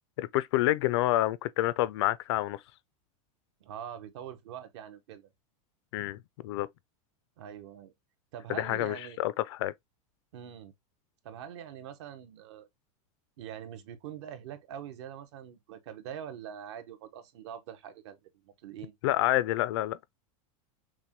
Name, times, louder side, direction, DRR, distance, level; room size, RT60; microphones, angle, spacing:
voice 1, 0.2-2.6 5.9-6.2 6.4-6.7 8.5-9.7 19.0-20.0, left 15 dB, 50° left, 0.4 m, -28 dB
voice 2, 3.6-5.3 7.4-7.9 8.3-9.2 10.3-10.7 11.2-12.7 13.4-18.9, right 9 dB, 55° right, 0.9 m, -44 dB
5.9 x 2.2 x 3.0 m
supercardioid pair, 175°, 18 cm